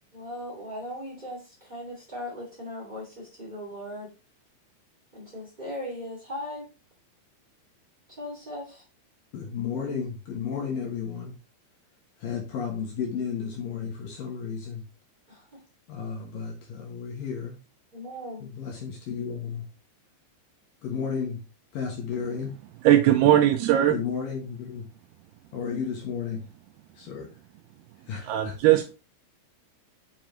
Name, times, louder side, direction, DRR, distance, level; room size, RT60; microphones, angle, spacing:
voice 1, 0.1-4.1 5.1-6.7 8.2-8.8 15.3-15.6 17.9-18.5, left 1 dB, 20° right, 1.2 m, -38 dB
voice 2, 9.3-11.4 12.2-14.8 15.9-17.6 18.4-19.7 20.8-21.4 21.7-22.6 23.9-24.9 25.5-26.5 27.0-27.3 28.1-28.5, left 6 dB, 65° left, 2.4 m, -33 dB
voice 3, 22.8-24.0 28.2-28.9, right 12 dB, 85° right, 2.4 m, -19 dB
7.1 x 6.1 x 3.1 m
omnidirectional pair, 5.3 m